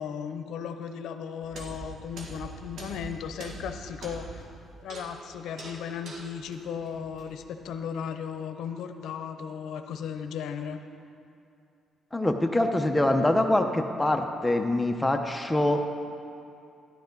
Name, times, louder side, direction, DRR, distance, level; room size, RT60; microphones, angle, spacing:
voice 1, 0.0-4.5 4.8-10.8, left 7 dB, 80° left, 8 dB, 0.7 m, -36 dB
sound 1, 1.4-7.7, right 2 dB, 60° right, 1.8 m, -43 dB
voice 2, 12.1-15.8, left 1 dB, 10° left, 5 dB, 0.9 m, -24 dB
13.0 x 11.5 x 4.0 m, 2.5 s
cardioid pair, 90°, 0 cm